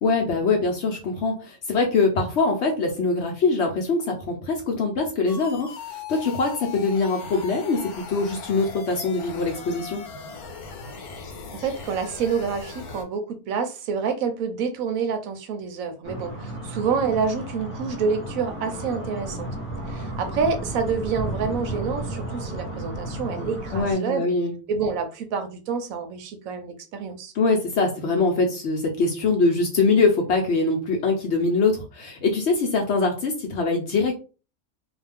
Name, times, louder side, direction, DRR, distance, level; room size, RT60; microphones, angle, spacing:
voice 1, 0.0-5.7 6.1-10.0 23.7-24.5 27.3-34.1, left 3 dB, 60° left, 2 dB, 0.8 m, -23 dB
sound 1, 5.3-13.0, left 5 dB, 85° left, 1.2 m, -39 dB
voice 2, 11.6-19.5 19.9-24.3 24.7-27.3, right 5 dB, 75° right, 7 dB, 0.9 m, -27 dB
sound 2, 16.0-23.9, right 1 dB, 10° left, 0.8 m, -33 dB
2.4 x 2.2 x 3.4 m, 0.33 s
omnidirectional pair, 1.5 m